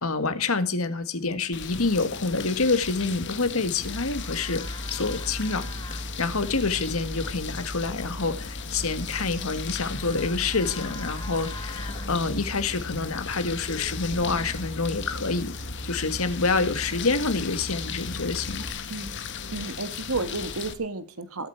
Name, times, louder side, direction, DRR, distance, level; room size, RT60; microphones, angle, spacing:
voice 1, 0.0-4.6 4.9-5.7 6.2-15.5 15.8-18.7, left 3 dB, 75° left, 1.8 m, -27 dB
sound 1, 1.5-20.7, left 6 dB, 55° left, 1.5 m, -37 dB
sound 2, 3.1-3.2 3.9-4.0 4.3-4.8 5.9-6.0 7.2-7.4 8.2-8.3 8.7-8.8 9.2-9.3 9.7-9.8 10.2-10.3 10.6-10.8 11.2-17.3 17.6-17.9, left 1 dB, 35° left, 1.8 m, -48 dB
Livestock farm animals working animals, 3.8-18.7, equal, 20° left, 2.0 m, -38 dB
voice 2, 19.5-21.5, right 3 dB, 80° right, 1.6 m, -32 dB
21.0 x 9.1 x 4.6 m
head